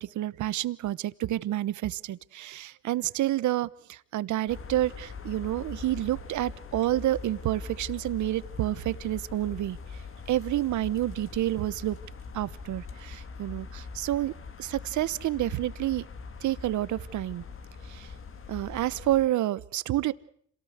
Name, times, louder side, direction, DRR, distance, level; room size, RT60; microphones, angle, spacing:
voice 1, 0.0-9.8 10.3-12.0 12.3-14.3 14.6-16.0 16.4-17.4 17.9-18.1 18.5-20.1, right 14 dB, 75° right, 18 dB, 1.0 m, -29 dB
sound 1, 4.5-19.3, left 5 dB, 45° left, 2.3 m, -42 dB
27.0 x 18.5 x 8.0 m, 0.67 s
cardioid pair, 90°, 30 cm